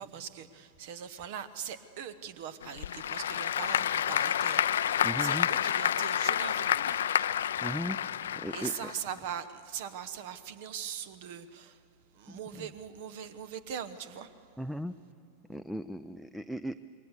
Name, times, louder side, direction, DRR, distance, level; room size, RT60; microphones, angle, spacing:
voice 1, 0.0-7.3 8.5-11.8 12.1-14.5, right 8 dB, 50° right, 14 dB, 0.9 m, -41 dB
Applause / Crowd, 2.6-9.2, left 10 dB, 65° left, 0.5 m, -29 dB
voice 2, 5.0-5.5 7.6-8.0 8.3-8.7 12.3-12.7 14.6-14.9 15.5-16.8, equal, ahead, 14 dB, 0.5 m, -37 dB
27.0 x 22.0 x 6.8 m, 2.8 s
figure-of-eight pair, 90°, 0 cm